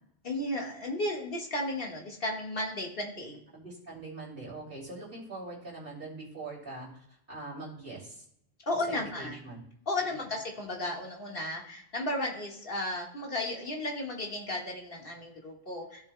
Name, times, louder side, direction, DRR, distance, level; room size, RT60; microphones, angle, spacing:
voice 1, 0.2-3.4 8.7-9.4 9.9-16.1, left 1 dB, 60° left, 0 dB, 1.9 m, -34 dB
voice 2, 3.5-8.2 8.9-9.6 10.0-10.2, right 2 dB, 60° right, -3 dB, 3.0 m, -43 dB
14.5 x 7.0 x 2.2 m, 0.73 s
omnidirectional pair, 1.0 m